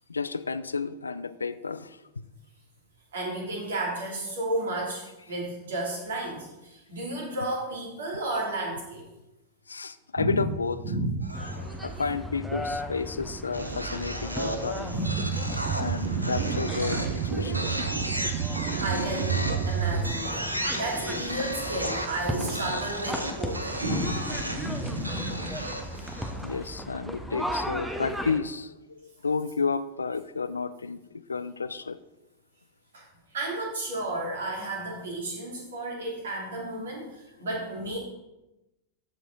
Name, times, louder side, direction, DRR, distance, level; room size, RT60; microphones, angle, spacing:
voice 1, 0.1-2.3 9.7-10.8 11.8-14.9 15.8-17.9 26.4-31.0 31.3-32.0, left 4 dB, 75° left, 14 dB, 0.4 m, -31 dB
voice 2, 3.1-9.0 10.2-10.5 10.8-11.3 14.8-15.6 16.1-16.5 18.8-25.8 32.9-33.0 33.3-38.0, right 1 dB, 65° right, -2 dB, 2.8 m, -32 dB
sound 1, 11.2-12.0 13.5-26.5, right 1 dB, 85° right, 0.8 m, -34 dB
sound 2, 11.3-28.4, equal, 5° right, 0.9 m, -36 dB
sound 3, 15.1-20.1, right 8 dB, 45° right, 0.5 m, -30 dB
13.5 x 4.8 x 3.9 m, 0.98 s
figure-of-eight pair, 90°, 0 cm